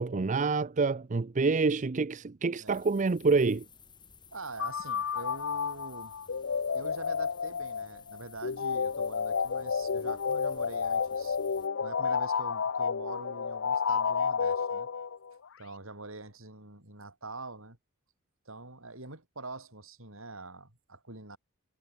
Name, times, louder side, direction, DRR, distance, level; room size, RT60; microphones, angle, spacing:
voice 1, 0.0-3.7, right 4 dB, 35° right, 0.5 m, -27 dB
sound 1, 2.7-11.7, left 6 dB, 20° left, 2.3 m, -56 dB
voice 2, 4.3-6.1 6.7-11.4 11.8-14.9 15.6-17.8 18.5-21.4, right 3 dB, 65° right, 5.5 m, -45 dB
sound 2, 4.6-15.3, left 6 dB, 60° left, 0.6 m, -31 dB
head